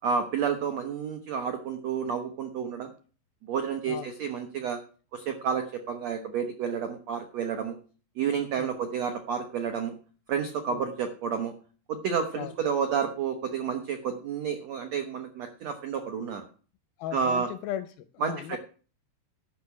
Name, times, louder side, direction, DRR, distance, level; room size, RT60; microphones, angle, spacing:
voice 1, 0.0-2.9 3.4-4.8 5.1-7.8 8.2-9.9 10.3-11.5 11.9-16.4 17.1-17.5 18.2-18.6, right 6 dB, 85° right, 6 dB, 1.4 m, -30 dB
voice 2, 17.0-18.6, left 11 dB, 80° left, 11 dB, 2.1 m, -37 dB
12.0 x 5.9 x 8.4 m, 0.39 s
omnidirectional pair, 4.8 m